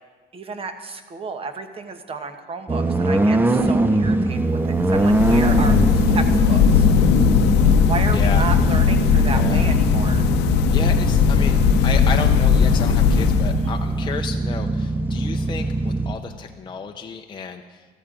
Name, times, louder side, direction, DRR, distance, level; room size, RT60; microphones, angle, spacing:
voice 1, 0.3-4.6 4.9-6.9 7.9-10.2 13.6-13.7, right 4 dB, 35° right, 8 dB, 1.1 m, -32 dB
sound 1, 2.7-16.1, right 2 dB, 10° right, 0.6 m, -22 dB
sound 2, 4.8-13.9, left 7 dB, 85° left, 0.7 m, -18 dB
voice 2, 8.1-8.5 9.2-9.8 10.7-11.6 11.8-17.9, left 6 dB, 25° left, 3 dB, 0.6 m, -32 dB
13.5 x 13.0 x 3.8 m, 1.5 s
cardioid pair, 110°, 17 cm